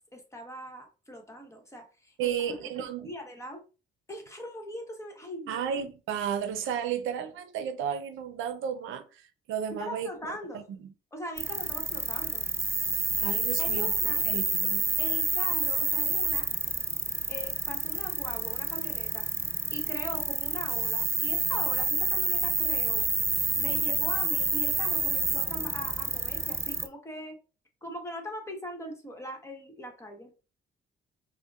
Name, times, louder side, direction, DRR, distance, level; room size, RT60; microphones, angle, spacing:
voice 1, 0.0-3.6 4.1-5.6 9.7-10.6 11.1-12.4 13.6-14.3 15.0-16.5 17.3-19.3 19.7-23.1 23.6-27.4 27.8-30.5, equal, 15° left, 1.1 m, -41 dB
voice 2, 2.2-3.1 5.5-10.1 10.8-10.9 13.2-13.9 14.2-14.8, right 8 dB, 85° right, 0.6 m, -33 dB
sound 1, 11.4-26.9, right 3 dB, 15° right, 0.3 m, -29 dB
5.0 x 2.2 x 2.4 m
cardioid pair, 90°, 20 cm